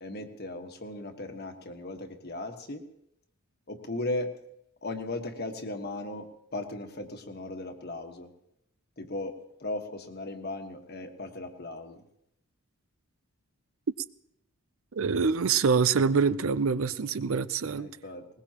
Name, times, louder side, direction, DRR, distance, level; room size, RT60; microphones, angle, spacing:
voice 1, 0.0-2.8 3.7-4.3 4.8-8.3 9.0-12.0 17.8-18.3, left 2 dB, 45° left, 1.5 m, -37 dB
voice 2, 14.9-17.9, right 5 dB, 65° right, 0.5 m, -25 dB
20.5 x 20.5 x 3.0 m
head